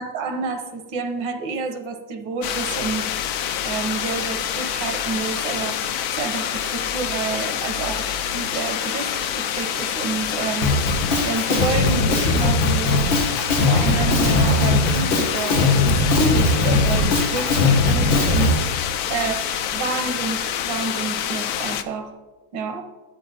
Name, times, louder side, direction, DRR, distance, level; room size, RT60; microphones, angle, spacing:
voice 1, 0.0-3.1 3.6-5.8 6.2-8.1 8.3-10.7 11.2-13.2 13.6-19.4 19.7-22.1 22.5-22.9, right 4 dB, 70° right, 7 dB, 1.6 m, -29 dB
sound 1, 2.4-21.8, left 9 dB, 70° left, 0.9 m, -27 dB
Drum kit, 10.6-18.6, left 2 dB, 90° left, 2.6 m, -19 dB
11.0 x 8.2 x 4.1 m, 1.2 s
omnidirectional pair, 2.1 m